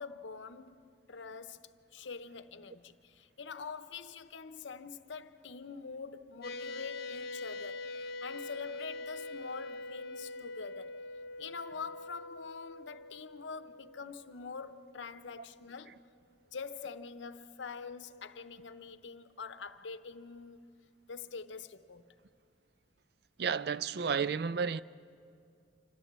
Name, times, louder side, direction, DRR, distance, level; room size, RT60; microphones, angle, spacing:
voice 1, 0.0-11.0 11.4-16.0 16.5-20.7 21.1-22.1, left 5 dB, 85° left, 0.7 m, -45 dB
sound 1, 6.4-15.1, left 2 dB, 55° left, 1.0 m, -44 dB
voice 2, 23.4-24.8, right 6 dB, 60° right, 0.4 m, -32 dB
26.5 x 14.0 x 7.4 m
head